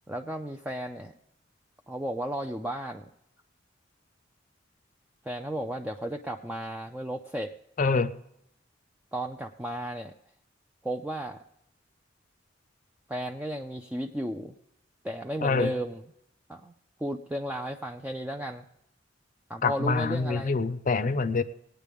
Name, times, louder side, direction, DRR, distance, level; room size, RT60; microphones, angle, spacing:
voice 1, 0.1-1.1 1.9-3.1 5.3-7.5 9.1-10.1 10.8-11.4 13.1-14.5 15.0-16.0 16.5-16.7 17.0-18.6 19.5-20.6, right 1 dB, 10° right, 3 dB, 0.4 m, -34 dB
voice 2, 7.8-8.1 15.4-15.7 19.6-21.4, left 4 dB, 45° left, 13 dB, 0.6 m, -25 dB
20.0 x 9.1 x 3.5 m, 0.79 s
head